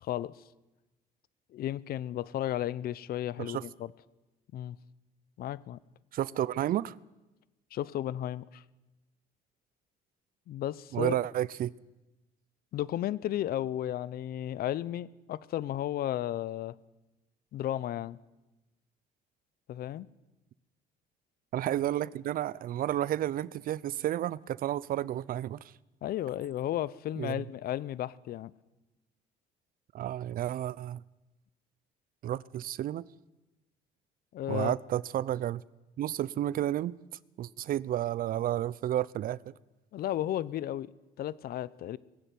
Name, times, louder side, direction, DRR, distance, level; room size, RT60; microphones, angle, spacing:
voice 1, 0.0-0.4 1.5-3.9 4.5-4.8 5.4-5.8 7.7-8.6 10.5-11.2 12.7-16.8 17.5-18.2 19.7-20.1 26.0-28.5 34.3-34.8 39.9-40.9 41.2-42.0, left 12 dB, 65° left, 0.7 m, -34 dB
voice 2, 6.1-6.9 10.9-11.7 21.5-25.6 27.2-27.4 29.9-31.0 32.2-33.0 34.5-35.6 36.0-36.9 37.4-39.5, right 12 dB, 55° right, 0.6 m, -31 dB
19.5 x 15.5 x 9.3 m
cardioid pair, 110°, 17 cm